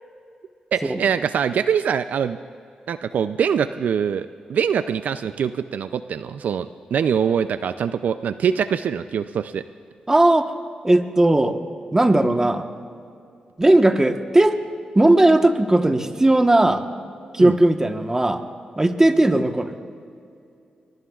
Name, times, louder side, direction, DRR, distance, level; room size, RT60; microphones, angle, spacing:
voice 1, 0.7-2.4 2.9-9.6 17.4-17.6, right 7 dB, 75° right, 12 dB, 0.4 m, -23 dB
voice 2, 10.1-10.5 10.8-11.6 11.9-12.6 13.6-14.6 14.9-16.8 17.3-18.4 18.8-19.7, right 1 dB, 20° right, 6 dB, 1.1 m, -17 dB
23.0 x 21.0 x 2.4 m, 2.4 s
cardioid pair, 65°, 3 cm